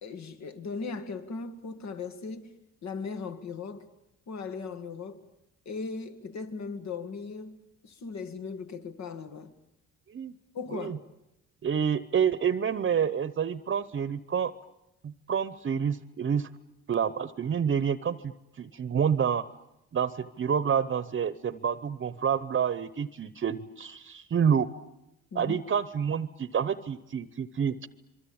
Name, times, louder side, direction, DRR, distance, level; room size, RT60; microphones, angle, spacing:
voice 1, 0.0-2.6 2.8-3.9 4.3-5.2 5.7-7.6 7.8-9.5 10.5-11.0 25.3-25.6, left 4 dB, 65° left, 2.1 m, -38 dB
voice 2, 11.6-14.5 15.0-16.5 16.9-18.3 18.6-19.4 19.9-24.7 25.3-27.9, right 7 dB, 40° right, 0.9 m, -28 dB
26.5 x 23.0 x 8.8 m
cardioid pair, 90°, 30 cm